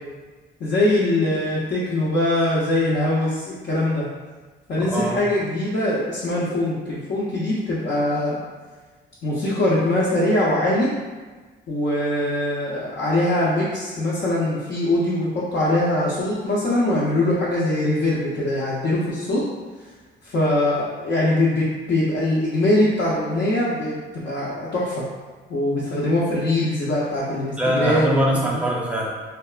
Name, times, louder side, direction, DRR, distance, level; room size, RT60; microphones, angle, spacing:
voice 1, 0.6-4.1 4.7-8.4 9.2-10.9 11.7-19.4 20.2-25.0 25.5-28.2, left 1 dB, 60° left, -8 dB, 0.6 m, -22 dB
voice 2, 4.8-5.2 27.6-29.1, right 1 dB, 5° right, -3 dB, 0.6 m, -22 dB
2.8 x 2.2 x 2.4 m, 1.3 s
cardioid pair, 90°, 20 cm